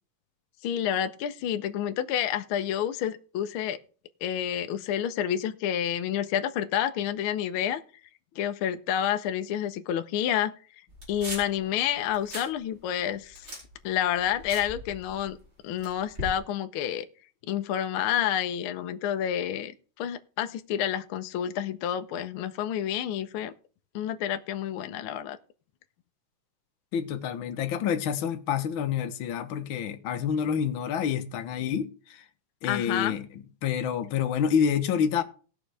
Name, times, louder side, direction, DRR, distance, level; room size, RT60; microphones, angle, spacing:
voice 1, 0.6-3.8 4.2-7.8 8.3-10.5 11.1-13.5 13.8-15.4 15.6-17.0 17.5-19.7 20.0-23.5 23.9-25.4 32.6-33.1, left 10 dB, 80° left, 1.1 m, -29 dB
sound 1, 10.9-11.6 12.0-12.5 12.9-15.4 15.8-16.4, equal, 25° right, 4.7 m, -40 dB
voice 2, 26.9-32.2 32.6-33.3 33.6-35.2, left 8 dB, 60° left, 1.4 m, -28 dB
19.0 x 6.3 x 3.4 m
omnidirectional pair, 3.5 m